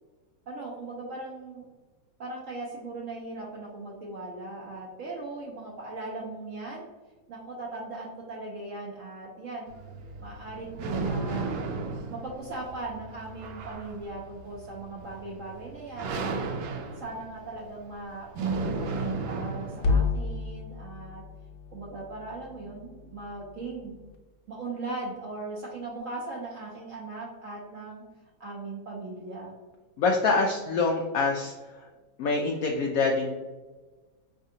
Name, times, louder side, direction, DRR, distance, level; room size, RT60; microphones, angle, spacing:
voice 1, 0.5-1.7 2.2-6.8 7.3-9.7 10.2-11.5 12.1-16.3 17.0-18.3 18.6-21.2 21.7-23.9 24.5-28.0 28.4-29.5, right 2 dB, 60° right, -3 dB, 0.8 m, -39 dB
sound 1, 9.7-20.1, right 4 dB, 80° right, 1.3 m, -34 dB
sound 2, 19.8-24.2, left 4 dB, 65° left, 1.1 m, -32 dB
voice 2, 30.0-31.5 31.8-31.9 32.2-33.3, left 3 dB, 85° left, 2 dB, 0.7 m, -25 dB
4.8 x 3.4 x 2.7 m, 1.3 s
omnidirectional pair, 2.1 m